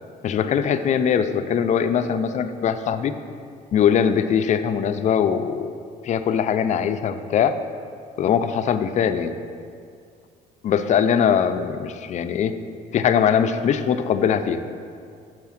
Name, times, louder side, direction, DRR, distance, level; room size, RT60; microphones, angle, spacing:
voice 1, 0.2-3.1 3.7-5.7 6.0-7.5 8.2-9.3 10.6-12.5 12.9-14.6, left 8 dB, 45° left, 10 dB, 0.4 m, -21 dB
6.3 x 4.7 x 5.8 m, 2.3 s
cardioid pair, 110°, 17 cm